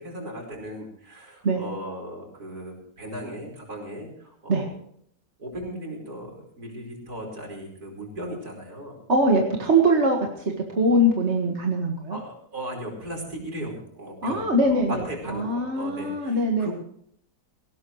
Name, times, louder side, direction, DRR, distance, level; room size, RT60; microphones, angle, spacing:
voice 1, 0.0-4.6 5.4-9.0 12.1-16.7, right 1 dB, 60° right, 1 dB, 5.4 m, -37 dB
voice 2, 9.1-10.2 10.7-12.2 14.2-16.7, right 1 dB, 40° right, 1 dB, 2.0 m, -22 dB
19.0 x 18.0 x 3.2 m, 0.65 s
omnidirectional pair, 1.8 m